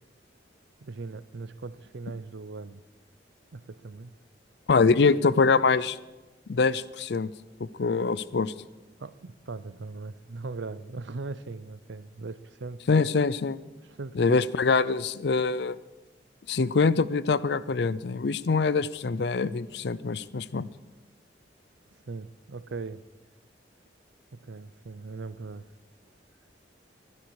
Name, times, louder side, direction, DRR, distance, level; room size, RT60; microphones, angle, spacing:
voice 1, 0.8-2.8 3.5-4.1 9.0-12.8 13.8-14.4 22.1-23.0 24.3-25.7, right 3 dB, 75° right, 16 dB, 0.6 m, -39 dB
voice 2, 4.7-6.0 6.5-7.3 7.8-8.5 12.9-13.6 14.2-15.7 16.5-20.7, left 4 dB, 60° left, 18 dB, 0.5 m, -24 dB
23.5 x 11.0 x 4.8 m, 1.1 s
head